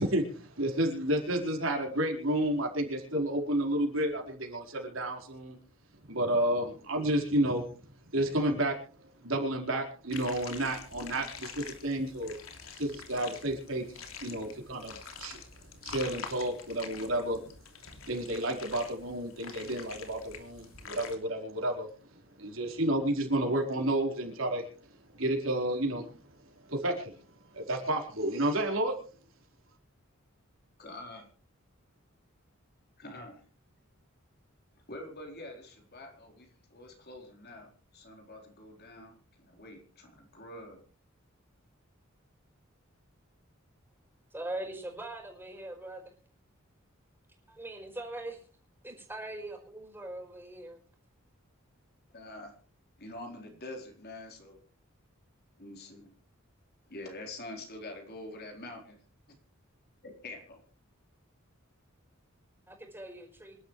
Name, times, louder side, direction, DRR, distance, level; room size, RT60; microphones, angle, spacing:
voice 1, 0.0-5.6 6.1-7.6 8.1-8.8 9.2-12.3 12.7-15.4 15.8-17.5 18.1-26.1 26.4-27.2 27.5-29.0, right 1 dB, 75° right, 1 dB, 4.5 m, -31 dB
sound 1, 10.1-21.2, left 5 dB, 85° left, 3.1 m, -46 dB
voice 2, 30.8-31.3 33.0-33.4 34.9-40.8 52.1-52.5 53.0-54.6 55.6-56.1 56.9-59.0 60.0-60.6, left 2 dB, 50° left, 1 dB, 4.2 m, -46 dB
voice 3, 44.3-46.0 47.5-48.4 48.8-50.8 62.7-63.6, right 1 dB, 10° right, 2 dB, 4.8 m, -41 dB
26.5 x 11.5 x 3.2 m, 0.39 s
head